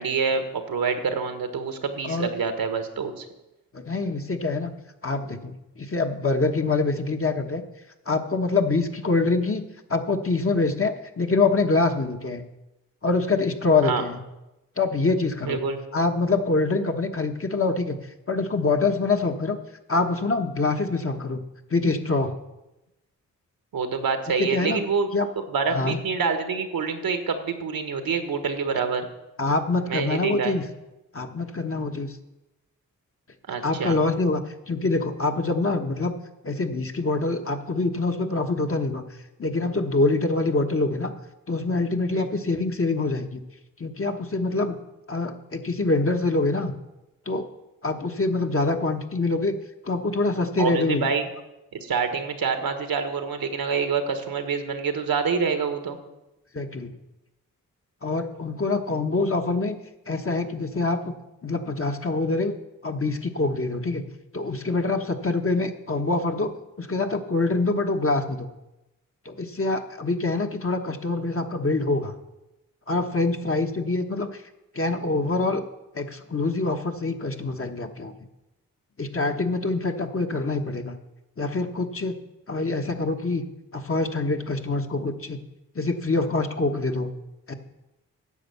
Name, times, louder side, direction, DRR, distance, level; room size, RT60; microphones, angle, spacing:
voice 1, 0.0-3.2 13.8-14.0 15.4-15.8 23.7-25.1 25.4-29.1 29.9-30.6 33.5-34.0 42.1-42.3 50.6-51.3 51.8-56.0, right 5 dB, 80° right, 7 dB, 1.4 m, -26 dB
voice 2, 3.7-4.7 5.0-7.6 8.1-9.6 9.9-12.4 13.0-14.2 14.8-15.6 15.9-18.0 18.3-19.6 19.9-21.4 21.7-22.3 24.4-24.8 25.1-25.3 25.7-26.0 29.4-30.6 31.1-32.2 33.6-36.1 36.4-39.0 39.4-41.1 41.5-43.4 43.8-44.8 45.1-46.7 47.3-47.5 47.8-49.5 49.8-51.1 56.5-56.9 58.0-59.8 60.1-61.1 61.4-62.5 62.8-64.0 64.3-66.5 66.8-68.5 69.2-72.1 72.9-74.4 74.7-75.6 75.9-78.1 79.0-80.9 81.4-82.2 82.5-83.4 83.7-85.4 85.7-87.1 87.5-87.6, left 3 dB, 40° left, 4 dB, 1.3 m, -25 dB
10.0 x 7.1 x 7.0 m, 0.96 s
supercardioid pair, 40°, 35 cm